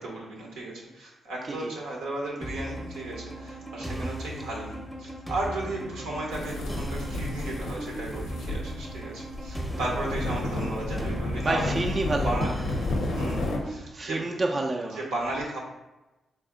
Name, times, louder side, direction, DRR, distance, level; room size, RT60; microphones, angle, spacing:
voice 1, 0.0-11.8 12.2-12.5 12.8-14.2 14.9-15.6, right 2 dB, 90° right, -2 dB, 0.8 m, -35 dB
sound 1, 2.4-13.8, right 1 dB, 5° right, 0.7 m, -38 dB
voice 2, 3.8-4.1 11.4-12.3 13.0-13.1 13.7-15.0, right 2 dB, 45° right, 0 dB, 0.4 m, -30 dB
sound 2, 6.3-13.6, left 2 dB, 80° left, 0.6 m, -31 dB
3.4 x 2.6 x 3.6 m, 1.0 s
supercardioid pair, 45°, 0 cm